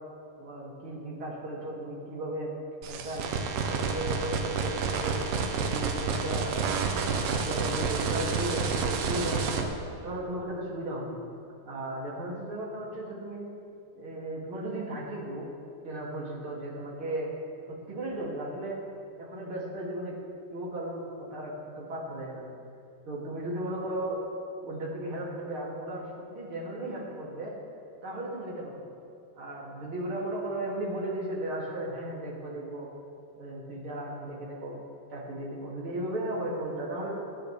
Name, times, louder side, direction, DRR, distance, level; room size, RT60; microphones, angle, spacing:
voice 1, 0.4-2.5 2.9-3.3 3.7-11.2 11.6-13.5 13.9-15.5 15.8-17.3 17.7-18.8 19.2-20.2 20.5-22.4 23.0-24.2 24.6-27.5 28.0-28.8 29.3-32.9 33.4-34.8 35.1-37.2, right 1 dB, 35° right, -5 dB, 3.2 m, -35 dB
sound 1, 2.8-9.6, right 5 dB, 85° right, 2.9 m, -29 dB
25.0 x 10.0 x 3.5 m, 2.5 s
omnidirectional pair, 4.4 m